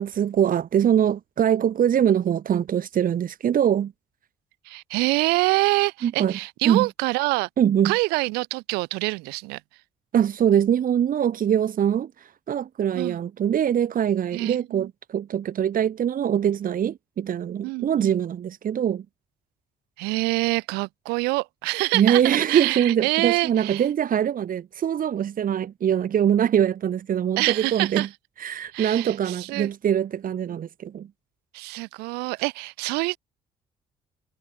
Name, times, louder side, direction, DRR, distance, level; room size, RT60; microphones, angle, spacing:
voice 1, 0.0-3.9 6.0-6.4 6.6-6.9 7.6-7.9 10.1-19.0 21.9-28.1 28.4-31.1, right 9 dB, 60° right, 3.1 m, -23 dB
voice 2, 4.6-7.5 7.8-9.6 12.9-13.2 14.3-14.9 17.6-18.2 20.0-23.8 27.4-28.1 28.7-29.7 31.5-33.2, right 25 dB, 85° right, 5.0 m, -26 dB
supercardioid pair, 60°, 16 cm